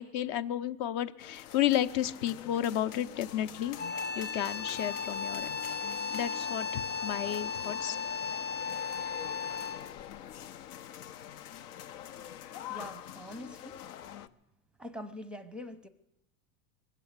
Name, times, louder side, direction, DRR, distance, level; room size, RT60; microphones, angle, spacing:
voice 1, 0.0-3.8 4.2-5.5 6.1-8.0, left 11 dB, 50° left, 0.8 m, -32 dB
sound 1, 1.2-14.3, left 11 dB, 80° left, 0.8 m, -45 dB
sound 2, 3.8-10.0, left 5 dB, 25° left, 0.9 m, -36 dB
voice 2, 12.7-13.8 14.8-15.9, left 1 dB, ahead, 0.6 m, -44 dB
21.5 x 8.3 x 8.1 m
supercardioid pair, 125°, 44 cm